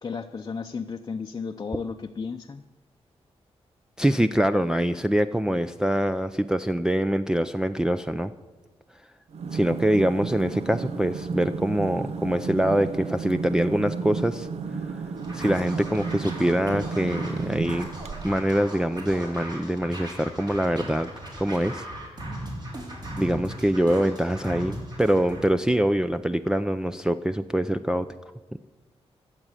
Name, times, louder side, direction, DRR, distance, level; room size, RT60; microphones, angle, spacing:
voice 1, 0.0-2.6, left 5 dB, 35° left, 3 dB, 0.6 m, -33 dB
voice 2, 4.0-8.3 9.5-14.5 14.8-15.0 15.3-17.9 18.2-21.1 21.4-21.9 23.2-28.1, right 1 dB, 5° right, 7 dB, 0.4 m, -24 dB
sound 1, 9.3-18.5, right 5 dB, 75° right, 0.9 m, -33 dB
Scratching (performance technique), 15.2-25.5, right 1 dB, 40° right, 3.7 m, -38 dB
14.0 x 7.5 x 9.9 m, 1.3 s
wide cardioid pair, 105°, 11 cm